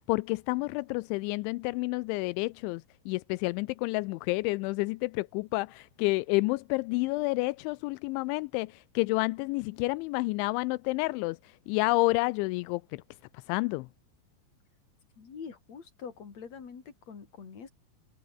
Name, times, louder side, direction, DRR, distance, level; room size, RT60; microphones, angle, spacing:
voice 1, 0.1-11.4 11.7-13.0 13.5-13.9, left 23 dB, 85° left, 2.6 m, -29 dB
voice 2, 15.2-17.7, left 6 dB, 35° left, 4.4 m, -45 dB
omnidirectional pair, 5.9 m